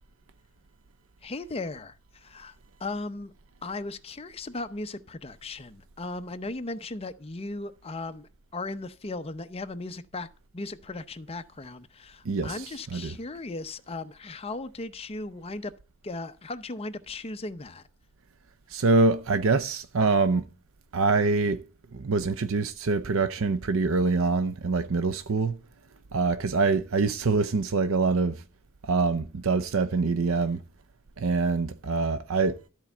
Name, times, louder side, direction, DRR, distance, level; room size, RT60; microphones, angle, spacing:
voice 1, 1.2-3.3 3.6-10.3 10.5-15.7 16.0-17.9, left 2 dB, 25° left, 0.6 m, -37 dB
voice 2, 12.2-12.6 12.9-13.1 18.7-20.5 20.9-21.6 21.9-25.6 26.1-28.4 28.8-30.6 31.2-32.6, right 4 dB, 65° right, 0.6 m, -25 dB
13.5 x 4.5 x 7.1 m
head